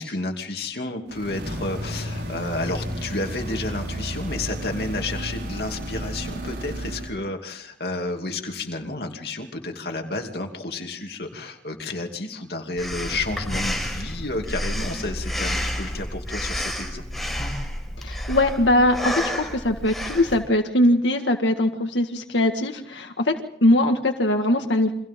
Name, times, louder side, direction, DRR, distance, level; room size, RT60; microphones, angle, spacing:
voice 1, 0.0-17.0, left 2 dB, 60° left, 3 dB, 2.7 m, -31 dB
sound 1, 1.1-7.2, equal, 80° right, 6.3 m, -32 dB
Breathing, 12.8-20.4, equal, ahead, 5.0 m, -30 dB
voice 2, 18.0-23.3 23.6-24.9, left 1 dB, 90° left, 4 dB, 1.9 m, -21 dB
30.0 x 25.0 x 3.8 m, 0.78 s
head